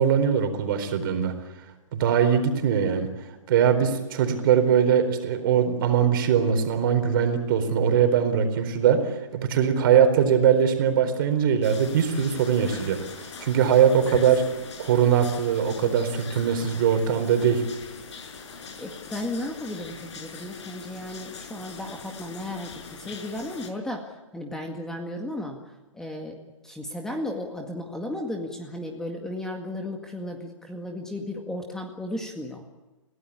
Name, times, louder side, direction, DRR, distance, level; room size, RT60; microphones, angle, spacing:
voice 1, 0.0-1.3 1.9-3.1 3.5-13.0 13.4-14.4 14.8-17.6, right 8 dB, 40° right, 8 dB, 4.3 m, -21 dB
sound 1, 11.6-23.7, left 5 dB, 60° left, 5.9 m, -41 dB
voice 2, 18.8-26.4 26.6-32.6, left 1 dB, 5° left, 2 dB, 2.0 m, -34 dB
29.5 x 17.0 x 8.6 m, 1.1 s
hypercardioid pair, 140°, 17 cm